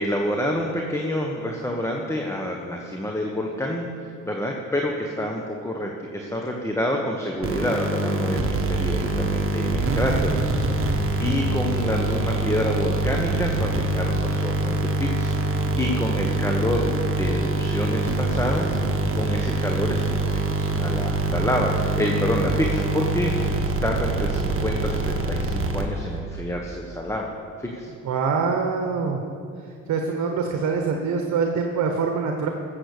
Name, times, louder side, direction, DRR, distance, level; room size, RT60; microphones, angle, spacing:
voice 1, 0.0-3.9 4.2-18.8 19.1-27.3 27.6-27.9, left 1 dB, 10° left, 0 dB, 1.4 m, -28 dB
sound 1, 7.4-26.2, right 2 dB, 45° right, 1.5 m, -24 dB
voice 2, 28.0-29.2 29.9-32.5, right 5 dB, 70° right, 3 dB, 1.2 m, -24 dB
15.0 x 7.7 x 6.8 m, 2.4 s
cardioid pair, 90°, 30 cm